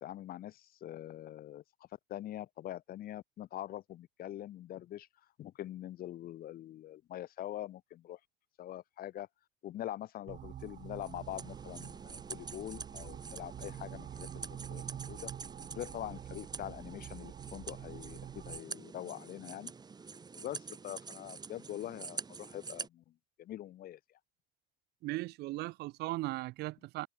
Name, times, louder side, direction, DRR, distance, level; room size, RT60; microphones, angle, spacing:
voice 1, 0.0-1.6 2.1-5.1 5.4-8.2 8.6-9.3 9.6-15.3 15.7-19.7 20.3-23.0 23.4-24.0, left 13 dB, 60° left, 1.1 m, -44 dB
sound 1, 10.3-18.6, right 10 dB, 55° right, 3.9 m, -47 dB
sound 2, 10.6-22.9, right 5 dB, 25° right, 1.0 m, -47 dB
voice 2, 25.0-27.1, right 19 dB, 80° right, 0.5 m, -37 dB
cardioid pair, 110°, 17 cm